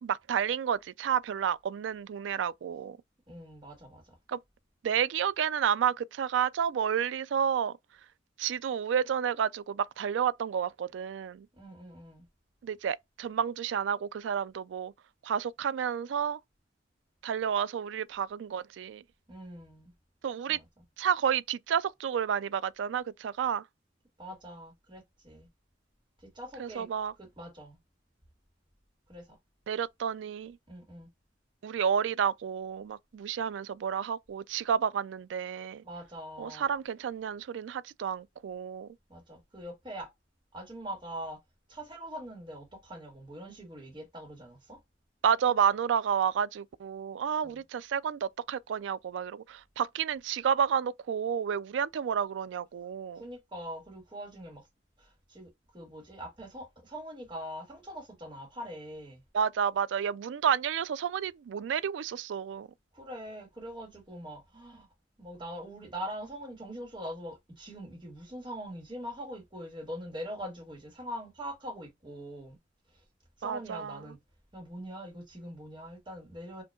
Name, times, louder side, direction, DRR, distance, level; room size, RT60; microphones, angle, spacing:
voice 1, 0.0-3.0 4.3-4.4 4.8-7.7 8.4-11.5 12.6-14.9 15.2-16.4 17.2-19.0 20.2-20.6 21.0-23.6 26.6-27.1 29.7-30.6 31.6-35.8 36.4-38.9 45.2-53.2 59.3-62.7 73.4-74.0, right 8 dB, 80° right, 0.3 m, -30 dB
voice 2, 3.3-4.2 11.5-12.2 19.3-19.9 20.5-20.6 24.2-25.5 26.2-26.9 27.2-27.8 29.1-29.4 30.7-31.1 35.8-36.7 39.1-40.1 40.5-41.4 41.7-44.8 47.4-47.6 53.1-54.7 55.0-59.2 62.9-64.9 65.2-72.6 73.4-74.2 74.5-76.6, equal, 25° right, 1.7 m, -43 dB
5.0 x 2.8 x 2.3 m
head